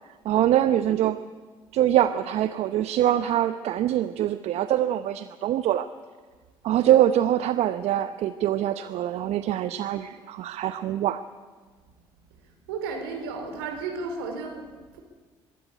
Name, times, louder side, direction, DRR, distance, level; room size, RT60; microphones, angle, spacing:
voice 1, 0.2-1.2 1.7-5.9 6.6-11.2, right 12 dB, 60° right, 12 dB, 0.8 m, -24 dB
voice 2, 12.4-15.0, right 4 dB, 80° right, 5 dB, 3.8 m, -34 dB
24.5 x 13.0 x 9.9 m, 1.4 s
hypercardioid pair, 55°, 12 cm